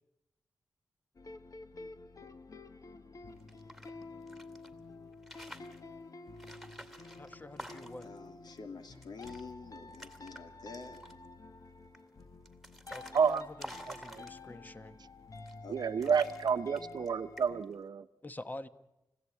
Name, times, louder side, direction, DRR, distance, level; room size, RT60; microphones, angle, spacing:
sound 1, 1.2-17.6, left 3 dB, 55° left, 1.3 m, -50 dB
sound 2, 3.4-4.7 5.1-5.8 6.4-8.2 8.6-8.7 8.9-9.4 9.7-10.4 10.7-11.3 11.9-14.6 15.3-15.7 16.0-17.1 17.4-17.7, equal, ahead, 2.4 m, -50 dB
voice 1, 7.2-8.1 12.9-15.0 18.2-18.7, left 1 dB, 25° left, 11 dB, 1.2 m, -46 dB
voice 2, 8.0-11.0 15.6-15.8, left 4 dB, 85° left, 5 dB, 2.7 m, -47 dB
voice 3, 15.7-18.1, right 6 dB, 80° right, 12 dB, 0.8 m, -30 dB
30.0 x 16.0 x 8.6 m, 0.92 s
wide cardioid pair, 75°, 7 cm